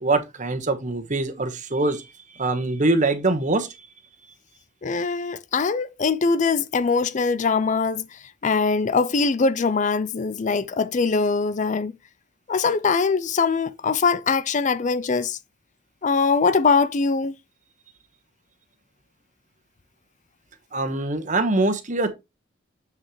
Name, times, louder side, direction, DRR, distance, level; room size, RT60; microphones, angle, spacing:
voice 1, 0.0-2.1 2.4-3.9 20.7-22.1, right 2 dB, 40° right, 1.3 m, -23 dB
voice 2, 4.8-8.1 8.4-11.9 12.5-15.4 16.0-17.3, left 4 dB, 40° left, 0.5 m, -22 dB
7.5 x 6.5 x 3.1 m
head